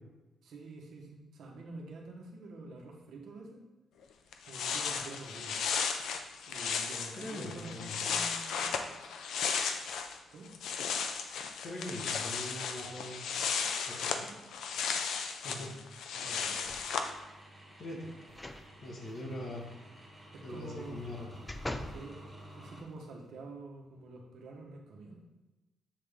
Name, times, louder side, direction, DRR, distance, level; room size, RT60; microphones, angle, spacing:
voice 1, 0.4-3.6 4.4-5.6 6.5-8.8 10.3-10.5 13.9-14.4 15.5-15.8 16.1-16.7 20.3-21.0 21.7-25.2, right 2 dB, 75° right, 0 dB, 1.1 m, -48 dB
sound 1, 4.0-4.1 4.3-10.2 10.4-17.1, left 6 dB, 85° left, 0.5 m, -35 dB
voice 2, 7.2-8.0 11.6-13.3 13.9-14.1 15.4-15.7 17.8-18.1 18.8-19.6 20.4-21.3, left 1 dB, 50° left, -1 dB, 1.4 m, -42 dB
sound 2, 16.2-22.8, equal, 10° right, 1.5 m, -52 dB
sound 3, 16.6-17.2 18.3-18.7 19.1-19.2 20.8-22.0 22.6-22.7, left 1 dB, 15° left, 0.4 m, -42 dB
7.5 x 3.7 x 3.5 m, 1.1 s
cardioid pair, 115°, 0 cm